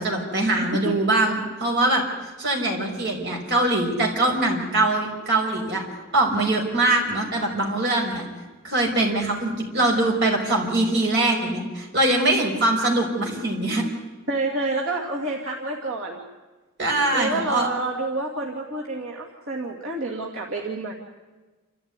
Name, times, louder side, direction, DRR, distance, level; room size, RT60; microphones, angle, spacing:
voice 1, 0.0-2.0 2.4-5.9 6.1-8.2 8.6-13.8 16.8-17.7, right 2 dB, 50° right, 0 dB, 5.7 m, -22 dB
voice 2, 14.3-16.2 17.1-20.9, right 2 dB, 75° right, -2 dB, 2.5 m, -28 dB
28.5 x 14.0 x 9.8 m, 1.2 s
head